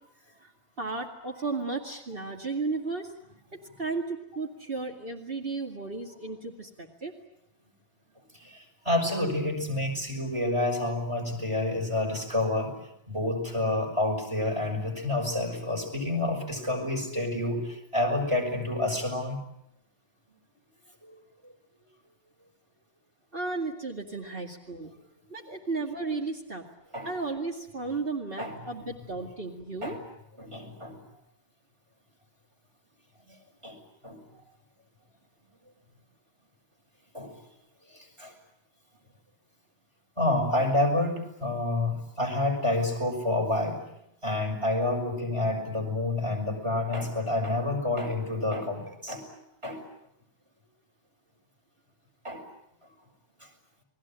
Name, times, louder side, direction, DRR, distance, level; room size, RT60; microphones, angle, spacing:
voice 1, 0.8-3.1 3.5-7.1 23.3-24.9 25.3-26.6 27.0-30.0, right 3 dB, 55° right, 1 dB, 2.6 m, -34 dB
voice 2, 8.4-12.7 13.1-19.4 21.1-21.2 26.9-27.1 28.4-28.6 29.8-30.0 30.4-31.0 33.6-33.8 34.0-34.2 37.1-37.3 38.2-38.3 40.2-43.8 44.2-49.2 49.6-49.8 52.2-52.4, left 2 dB, 25° right, 3 dB, 5.9 m, -28 dB
30.0 x 20.5 x 8.8 m, 0.79 s
omnidirectional pair, 1.2 m